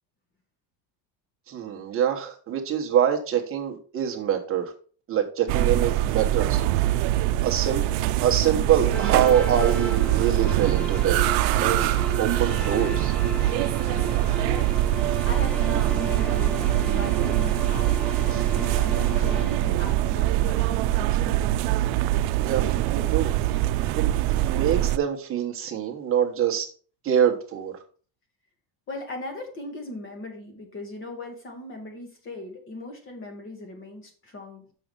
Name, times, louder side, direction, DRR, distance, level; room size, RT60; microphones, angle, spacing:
voice 1, 1.5-4.7 5.1-6.6 7.4-7.8 8.2-11.2 11.6-13.1 18.3-18.4 22.4-23.3 24.0-24.1 24.4-26.7 27.0-27.7, right 9 dB, 30° right, 2 dB, 1.2 m, -25 dB
sound 1, 5.5-25.0, right 14 dB, 90° right, 0.6 m, -23 dB
sound 2, 8.9-20.7, right 1 dB, 5° left, 0.4 m, -35 dB
voice 2, 14.5-17.9 18.5-21.6 28.9-34.7, left 2 dB, 25° left, 4 dB, 1.5 m, -39 dB
6.3 x 4.7 x 5.3 m, 0.41 s
cardioid pair, 175°, 47 cm